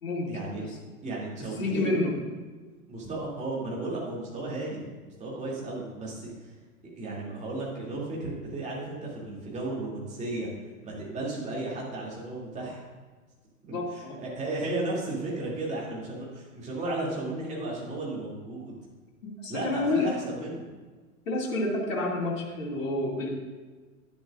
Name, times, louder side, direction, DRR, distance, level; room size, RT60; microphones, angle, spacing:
voice 1, 0.2-0.6 1.0-2.2 2.9-6.5 6.9-10.5 10.8-12.8 13.7-18.8 19.5-20.7, right 2 dB, 15° right, -5 dB, 2.7 m, -34 dB
voice 2, 1.6-2.1 13.7-14.1 19.2-20.1 21.3-23.3, left 2 dB, 60° left, -3 dB, 2.6 m, -29 dB
11.0 x 10.5 x 2.5 m, 1.4 s
figure-of-eight pair, 100°, 44 cm